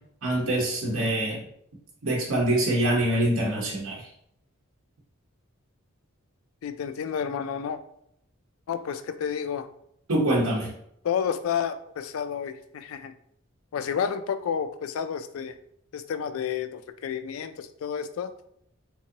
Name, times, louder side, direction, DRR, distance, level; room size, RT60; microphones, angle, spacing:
voice 1, 0.2-1.4 2.0-4.0 10.1-10.7, right 1 dB, 75° right, -3 dB, 0.8 m, -24 dB
voice 2, 6.6-7.8 8.7-9.7 11.0-13.1 13.7-15.6 15.9-18.3, left 7 dB, 75° left, 11 dB, 0.3 m, -30 dB
3.6 x 3.0 x 2.7 m, 0.72 s
head